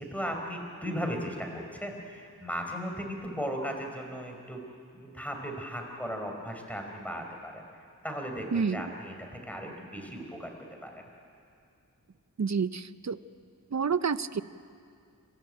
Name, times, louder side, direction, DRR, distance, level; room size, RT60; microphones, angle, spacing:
voice 1, 0.0-4.6 4.9-7.6 8.0-10.5 10.8-11.0, equal, 5° left, 2 dB, 5.0 m, -36 dB
voice 2, 8.5-8.8 12.4-13.2 13.7-14.4, right 6 dB, 50° right, 14 dB, 0.7 m, -28 dB
27.0 x 15.0 x 9.1 m, 2.3 s
cardioid pair, 45°, 36 cm